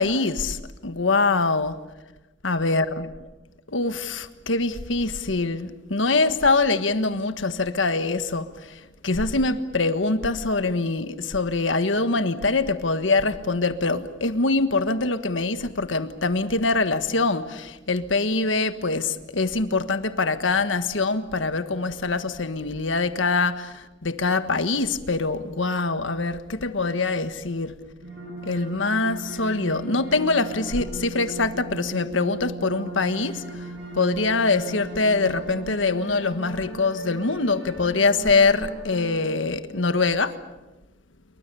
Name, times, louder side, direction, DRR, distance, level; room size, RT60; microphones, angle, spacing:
voice 1, 0.0-1.8 2.4-3.0 3.7-27.8 28.4-33.6 33.9-40.4, left 3 dB, 90° left, 1.5 m, -24 dB
sound 1, 28.0-39.3, right 1 dB, 65° right, 7.3 m, -38 dB
28.0 x 23.5 x 7.0 m
head